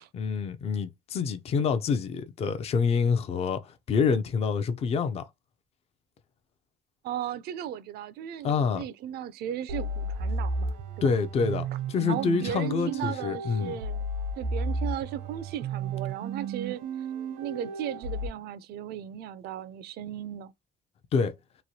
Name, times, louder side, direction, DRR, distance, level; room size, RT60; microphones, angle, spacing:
voice 1, 0.1-5.3 8.4-8.8 11.0-13.7 21.1-21.3, left 5 dB, 35° left, 0.4 m, -27 dB
voice 2, 7.0-11.1 12.1-14.1 14.4-16.8 17.4-20.5, right 10 dB, 70° right, 0.4 m, -36 dB
sound 1, 9.7-18.3, right 3 dB, 90° right, 0.8 m, -33 dB
3.0 x 2.2 x 2.7 m
cardioid pair, 110°, 17 cm